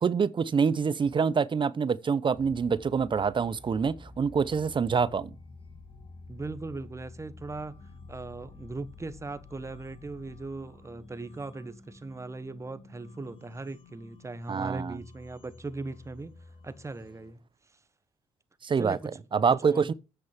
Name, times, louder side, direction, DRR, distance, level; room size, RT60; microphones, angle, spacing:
voice 1, 0.0-5.3 14.5-15.0 18.6-19.0 19.3-19.9, right 6 dB, 40° right, 0.7 m, -26 dB
sound 1, 2.3-17.3, left 3 dB, 45° left, 2.8 m, -50 dB
voice 2, 6.3-7.7 8.1-16.3 16.6-17.4 18.8-19.2 19.6-19.9, right 3 dB, 20° right, 1.2 m, -39 dB
8.2 x 6.2 x 7.2 m
supercardioid pair, 65°, 13 cm